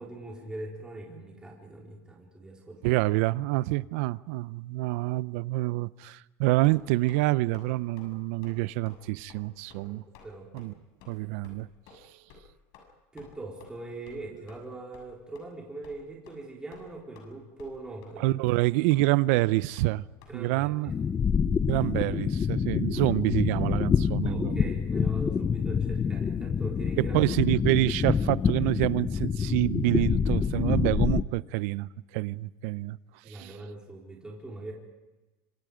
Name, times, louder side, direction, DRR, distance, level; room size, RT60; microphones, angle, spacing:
voice 1, 0.0-3.0 9.8-10.5 13.1-18.4 20.3-20.9 24.2-27.2 30.4-30.5 33.2-34.7, right 2 dB, 10° right, 4.3 m, -42 dB
voice 2, 2.8-10.0 10.5-10.7 11.1-11.7 18.2-20.0 20.3-20.9 21.7-24.6 27.0-33.0 33.3-33.5, right 19 dB, 80° right, 0.6 m, -27 dB
sound 1, 6.6-7.2 7.5-7.7 8.0-8.1 8.4-8.6 8.9-9.0 9.3-9.4 9.7-9.8 10.1-10.3 10.6-10.7 11.0-11.1 11.4-11.5 11.9-12.0 12.3-12.4 12.7-12.9 13.2-13.3 13.6-13.7 14.1-14.2 14.5-14.6 14.9-15.1 15.3-15.4 15.8-16.0 16.3-16.4 16.7-17.3 17.6-17.8 18.0-18.1 18.5-18.6 18.9-19.0 19.3-19.5 19.8-19.9 20.2-20.3, left 6 dB, 65° left, 7.1 m, -52 dB
sound 2, 20.9-31.2, left 6 dB, 25° left, 0.7 m, -27 dB
26.0 x 26.0 x 5.1 m
cardioid pair, 140°, 8 cm